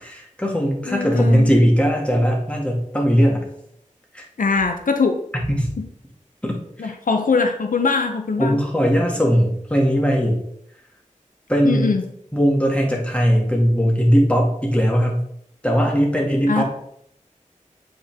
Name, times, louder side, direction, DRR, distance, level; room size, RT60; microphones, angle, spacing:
voice 1, 0.0-3.5 4.1-4.2 5.5-5.7 6.4-6.6 8.4-10.4 11.5-11.9 12.3-15.2 15.6-16.6, equal, 10° left, -1 dB, 2.1 m, -19 dB
voice 2, 0.9-1.5 4.4-5.2 5.8-5.9 6.8-8.6 11.6-12.0 16.5-16.6, left 4 dB, 85° left, 5 dB, 0.7 m, -21 dB
8.4 x 4.4 x 3.6 m, 0.71 s
wide cardioid pair, 60°, 14 cm